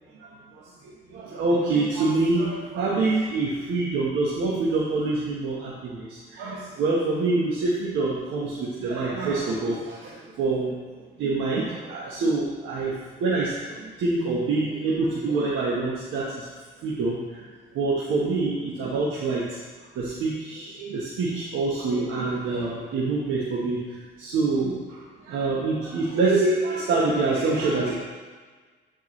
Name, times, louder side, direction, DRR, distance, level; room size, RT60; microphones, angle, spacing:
voice 1, 0.2-10.8 11.2-12.9 13.2-16.5 16.8-17.4 17.7-19.6 19.9-23.8 24.2-27.9, right 3 dB, 80° right, -6 dB, 1.3 m, -26 dB
12.5 x 4.6 x 3.2 m, 1.4 s
cardioid pair, 90°, 20 cm